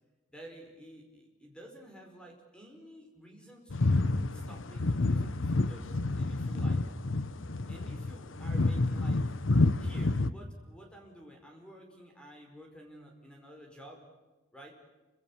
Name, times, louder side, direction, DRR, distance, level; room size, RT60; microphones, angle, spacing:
voice 1, 0.3-6.9 7.7-9.3 9.8-14.1 14.5-14.7, right 1 dB, 5° left, 1 dB, 5.1 m, -51 dB
sound 1, 3.7-10.3, left 2 dB, 80° left, 1.0 m, -29 dB
29.5 x 26.0 x 7.4 m, 1.2 s
head